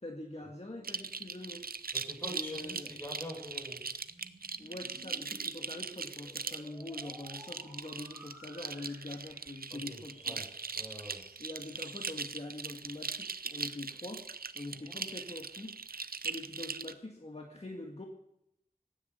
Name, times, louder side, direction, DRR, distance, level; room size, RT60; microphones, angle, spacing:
voice 1, 0.0-1.6 2.3-2.9 4.6-10.4 11.4-14.3 14.5-15.8 16.2-18.0, left 2 dB, 45° left, 1 dB, 1.9 m, -44 dB
sound 1, 0.8-16.9, right 5 dB, 90° right, 0.6 m, -40 dB
voice 2, 1.9-3.8 9.7-10.0 10.2-10.4 10.7-11.2 14.7-15.0, equal, 15° left, -1 dB, 6.6 m, -44 dB
sound 2, 3.0-12.6, right 1 dB, 10° right, 4.2 m, -56 dB
15.5 x 9.8 x 6.9 m, 0.81 s
wide cardioid pair, 45°, 15 cm